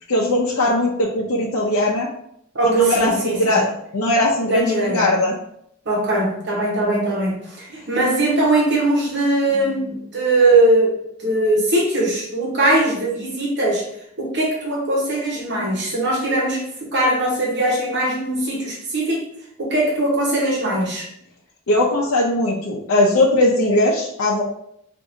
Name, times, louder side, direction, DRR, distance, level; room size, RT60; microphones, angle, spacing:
voice 1, 0.1-2.1 2.6-5.3 21.7-24.4, left 1 dB, 85° left, -3 dB, 0.6 m, -19 dB
voice 2, 2.5-3.6 4.5-5.1 5.9-11.0 11.2-13.9 14.2-16.6 16.9-19.2 19.6-21.1, right 2 dB, 60° right, -3 dB, 1.1 m, -20 dB
4.7 x 2.6 x 2.6 m, 0.73 s
head